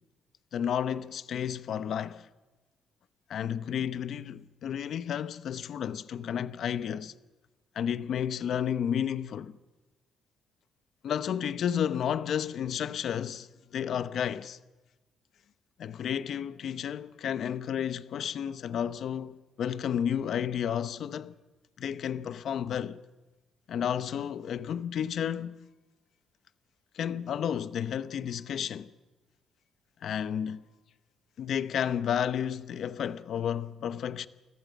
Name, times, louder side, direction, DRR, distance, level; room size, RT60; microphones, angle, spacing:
voice 1, 0.5-2.3 3.3-7.2 7.7-9.6 11.0-14.6 15.8-21.3 21.8-23.0 23.7-25.6 26.9-28.9 30.0-30.7 31.4-34.3, left 9 dB, 65° left, 0.8 m, -32 dB
29.5 x 14.5 x 8.2 m
cardioid pair, 90°, 0 cm